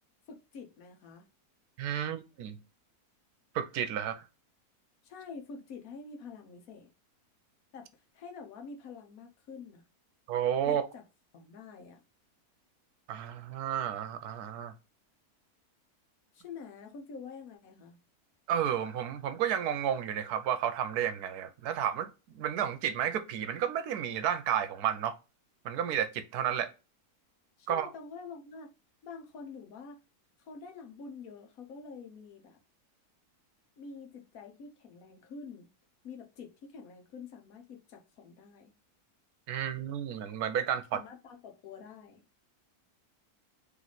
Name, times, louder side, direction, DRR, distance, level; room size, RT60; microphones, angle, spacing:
voice 1, 0.3-1.3 5.0-6.9 7.7-7.9 8.1-9.8 10.6-11.0 11.3-12.0 16.3-18.0 27.6-28.7 29.0-30.0 30.4-32.6 33.8-35.7 36.0-38.7 40.9-42.2, left 5 dB, 65° left, 1.2 m, -47 dB
voice 2, 1.8-2.6 3.5-4.2 10.3-10.8 13.1-14.7 18.5-25.1 25.6-26.7 27.7-27.9 39.5-41.0, right 9 dB, 80° right, 1.2 m, -32 dB
3.2 x 3.1 x 3.9 m
omnidirectional pair, 1.6 m